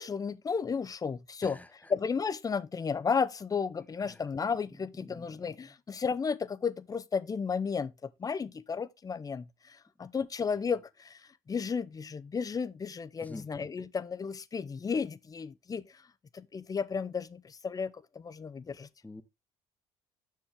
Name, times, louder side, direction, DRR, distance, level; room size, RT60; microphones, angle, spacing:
voice 1, 0.0-16.0 16.3-18.9, left 5 dB, 30° left, 0.7 m, -33 dB
voice 2, 5.1-5.4 5.6-5.7 13.2-13.5 19.0-19.2, left 2 dB, 10° left, 1.1 m, -46 dB
7.3 x 6.3 x 3.5 m
hypercardioid pair, 65°, 13 cm